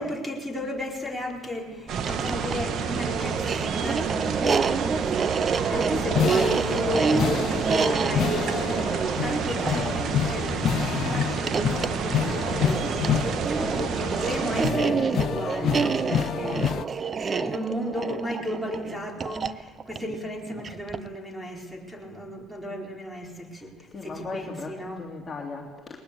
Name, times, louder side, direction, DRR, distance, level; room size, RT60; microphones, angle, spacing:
voice 1, 0.0-5.0 5.7-25.1, equal, 5° right, 0 dB, 4.5 m, -34 dB
sound 1, 1.9-21.2, right 5 dB, 35° right, 0.6 m, -28 dB
sound 2, 1.9-14.7, right 6 dB, 60° right, 1.6 m, -30 dB
sound 3, 5.5-16.8, left 9 dB, 55° left, 0.7 m, -29 dB
voice 2, 5.7-6.8 13.5-14.5 23.6-26.0, left 4 dB, 30° left, -1 dB, 2.8 m, -38 dB
20.0 x 19.0 x 6.9 m, 1.4 s
supercardioid pair, 90°, 0 cm